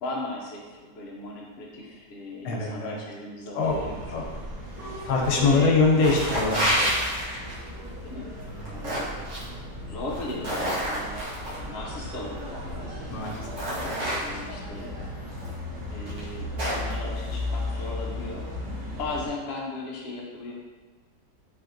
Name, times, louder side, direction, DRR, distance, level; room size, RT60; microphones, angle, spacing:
voice 1, 0.0-4.0 5.2-5.7 8.0-8.3 8.6-9.1 9.9-13.0 13.8-15.0 15.9-20.5, left 2 dB, 90° left, -3 dB, 0.5 m, -37 dB
voice 2, 2.4-2.9 3.5-3.7 4.1-4.2 5.0-6.9 13.1-13.4 13.7-14.0, left 3 dB, 70° left, -1 dB, 1.1 m, -23 dB
sound 1, 3.6-19.3, left 1 dB, 20° right, 0.6 m, -36 dB
sound 2, 5.2-5.6 5.9-7.7 8.4-9.4 10.1-11.6 12.6-12.7 13.2-14.6 15.4-15.5 16.1-16.9, equal, 60° right, 1.3 m, -29 dB
3.4 x 3.3 x 2.5 m, 1.4 s
omnidirectional pair, 2.0 m